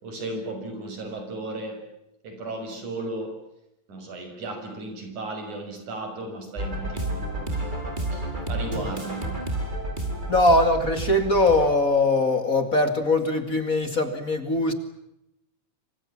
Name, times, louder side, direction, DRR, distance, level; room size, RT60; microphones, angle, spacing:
voice 1, 0.0-1.8 2.2-3.4 3.9-7.6 8.1-9.4, right 2 dB, 90° right, 6 dB, 7.8 m, -35 dB
sound 1, 6.6-11.7, right 1 dB, 15° right, 5.0 m, -30 dB
voice 2, 10.3-14.7, left 2 dB, 30° left, 8 dB, 2.4 m, -21 dB
27.0 x 26.0 x 7.4 m, 0.84 s
omnidirectional pair, 3.3 m